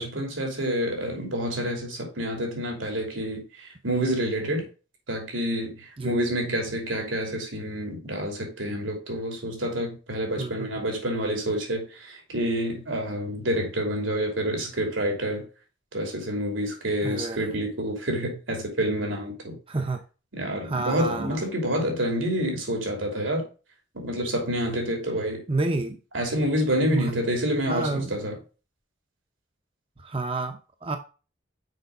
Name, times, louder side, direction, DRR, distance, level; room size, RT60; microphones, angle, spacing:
voice 1, 0.0-4.6 5.1-15.4 15.9-19.6 20.3-23.5 23.9-25.4 26.1-28.4, equal, 85° right, 3.0 m, -28 dB
voice 2, 10.4-10.7 17.0-17.5 19.7-20.0 20.6-21.5 25.5-26.0 26.9-27.1 27.7-28.1 30.0-31.0, right 2 dB, 30° right, 0.7 m, -29 dB
6.7 x 5.2 x 5.2 m
head